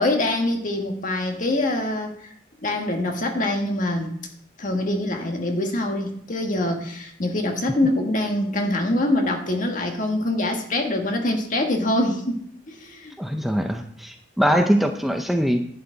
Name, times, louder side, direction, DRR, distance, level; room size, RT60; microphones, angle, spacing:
voice 1, 0.0-2.1 2.6-4.1 4.6-13.2, left 1 dB, 45° left, 3 dB, 1.6 m, -24 dB
voice 2, 13.2-15.7, equal, ahead, 4 dB, 0.6 m, -22 dB
11.0 x 8.7 x 3.9 m, 0.66 s
head